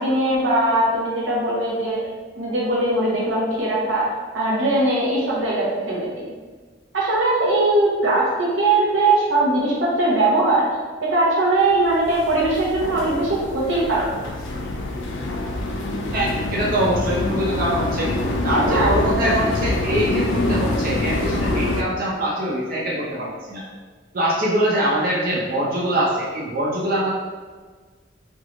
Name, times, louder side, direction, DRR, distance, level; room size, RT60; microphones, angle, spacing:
voice 1, 0.0-2.0 2.3-6.2 6.9-10.8 11.0-14.1 18.5-18.9 19.2-19.3, right 2 dB, 90° right, -5 dB, 0.7 m, -20 dB
sound 1, 11.8-21.8, left 2 dB, 80° left, 0.3 m, -25 dB
voice 2, 16.1-18.1 18.4-23.6 24.1-27.1, right 1 dB, 50° right, -6 dB, 0.6 m, -23 dB
3.0 x 2.2 x 2.5 m, 1.5 s
head